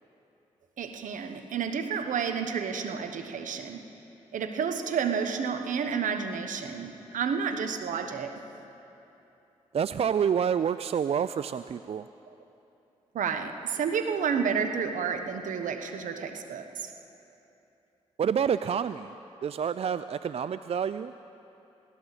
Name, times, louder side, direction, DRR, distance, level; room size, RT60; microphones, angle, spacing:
voice 1, 0.8-3.8 4.3-8.3 13.1-16.9, right 6 dB, 75° right, 7 dB, 1.1 m, -30 dB
voice 2, 9.7-12.1 18.2-19.1 19.4-21.1, right 7 dB, 50° right, 13 dB, 0.4 m, -28 dB
19.5 x 17.0 x 4.1 m, 2.9 s
supercardioid pair, 45°, 13 cm